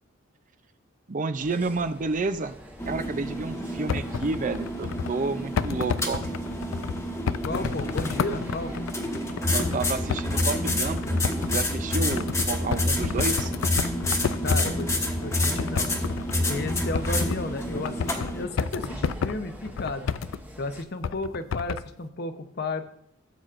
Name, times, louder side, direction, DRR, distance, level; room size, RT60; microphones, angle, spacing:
voice 1, 1.1-2.5 2.9-6.3 9.5-11.2 11.5-13.5, right 3 dB, 40° right, 11 dB, 0.5 m, -30 dB
sound 1, 1.4-20.8, equal, 10° right, 1.0 m, -45 dB
sound 2, 2.8-18.4, left 1 dB, 15° left, 1.2 m, -28 dB
sound 3, 3.6-5.2 5.5-14.9 15.2-17.5 17.8-20.4 21.0-21.9, left 6 dB, 75° left, 0.4 m, -31 dB
voice 2, 7.4-8.7 14.4-14.9 15.2-15.9 16.4-20.1 20.6-22.8, left 2 dB, 55° left, 8 dB, 0.8 m, -33 dB
17.0 x 8.0 x 2.5 m, 0.72 s
head